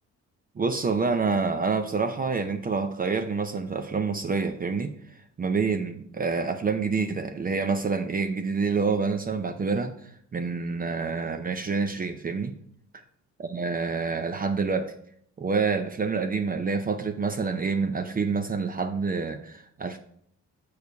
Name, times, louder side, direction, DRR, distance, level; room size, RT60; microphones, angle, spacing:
voice 1, 0.6-12.5 13.4-14.9 15.4-20.0, right 4 dB, 30° right, 7 dB, 0.5 m, -27 dB
6.8 x 4.8 x 4.6 m, 0.67 s
cardioid pair, 90°, 30 cm